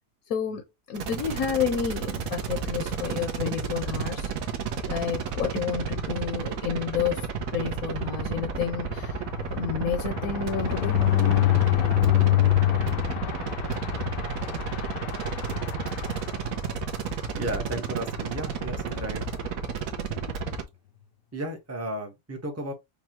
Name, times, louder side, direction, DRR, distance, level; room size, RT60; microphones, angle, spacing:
voice 1, 0.3-4.3 4.9-9.2 9.5-11.0, left 8 dB, 65° left, 1.1 m, -30 dB
sound 1, 0.9-20.6, right 6 dB, 60° right, 1.0 m, -32 dB
sound 2, 8.1-16.9 17.3-17.5 17.7-17.8 18.1-18.4, left 14 dB, 85° left, 1.3 m, -26 dB
voice 2, 17.4-19.2 21.3-22.7, right 1 dB, 15° right, 0.6 m, -34 dB
5.3 x 2.3 x 2.9 m
omnidirectional pair, 1.8 m